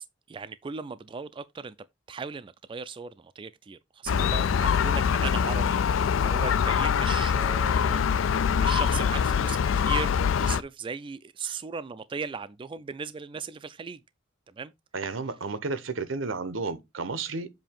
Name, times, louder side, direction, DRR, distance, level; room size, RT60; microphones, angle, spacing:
voice 1, 0.0-1.7 2.1-14.0 14.5-14.7, right 5 dB, 25° right, 0.3 m, -38 dB
Gull seagull, 4.1-10.6, left 7 dB, 80° left, 0.4 m, -24 dB
voice 2, 14.9-17.5, right 4 dB, 80° right, 0.9 m, -32 dB
7.6 x 2.8 x 5.1 m
head